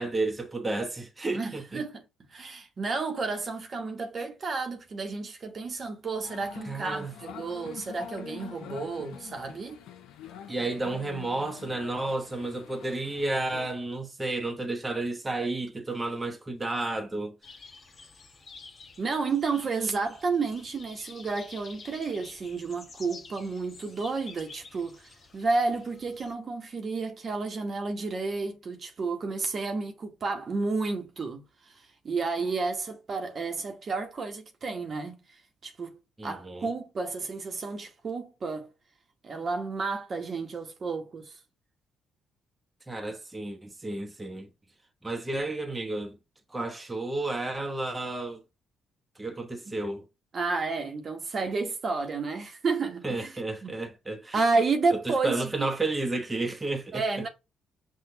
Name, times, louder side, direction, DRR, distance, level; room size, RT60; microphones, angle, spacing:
voice 1, 0.0-1.8 6.6-7.1 10.5-17.4 36.2-36.7 42.9-44.5 45.0-46.2 46.5-48.4 49.2-50.0 53.0-54.4 54.9-57.0, right 2 dB, 20° right, 1.0 m, -32 dB
voice 2, 1.3-2.0 2.3-9.8 19.0-35.1 35.6-38.7 39.2-41.4 50.3-53.3 53.6-53.7 54.3-55.7 56.9-57.3, right 4 dB, 45° right, 1.1 m, -31 dB
sound 1, 6.2-13.7, left 8 dB, 75° left, 0.6 m, -45 dB
sound 2, 17.4-26.3, left 4 dB, 45° left, 0.9 m, -50 dB
5.9 x 2.5 x 2.7 m
supercardioid pair, 60°, 0 cm